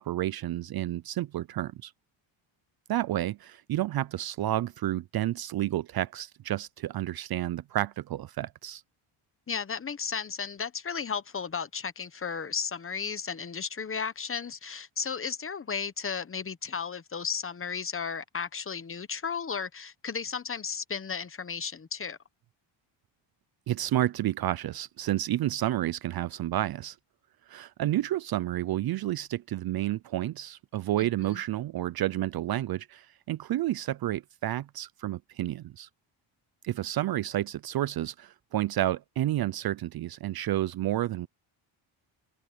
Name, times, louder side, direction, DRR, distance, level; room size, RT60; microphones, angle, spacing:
voice 1, 0.0-1.9 2.9-8.8 23.7-27.0 27.5-35.9 36.6-41.3, right 14 dB, 50° right, 0.5 m, -30 dB
voice 2, 9.5-22.2 31.3-31.4, left 6 dB, 25° left, 1.0 m, -34 dB
open air
cardioid pair, 125°, 48 cm